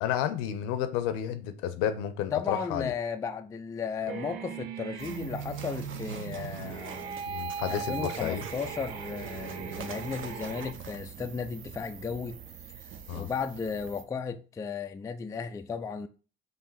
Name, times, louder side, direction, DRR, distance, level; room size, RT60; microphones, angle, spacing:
voice 1, 0.0-2.9 7.3-8.4 13.1-13.3, left 10 dB, 65° left, 0.7 m, -31 dB
voice 2, 2.3-7.3 7.7-12.4 13.1-16.1, left 5 dB, 10° left, 0.3 m, -35 dB
sound 1, 4.1-10.7, right 7 dB, 75° right, 0.5 m, -39 dB
sound 2, 5.0-14.0, right 8 dB, 40° right, 0.7 m, -45 dB
5.2 x 2.5 x 4.0 m
hypercardioid pair, 60°, 32 cm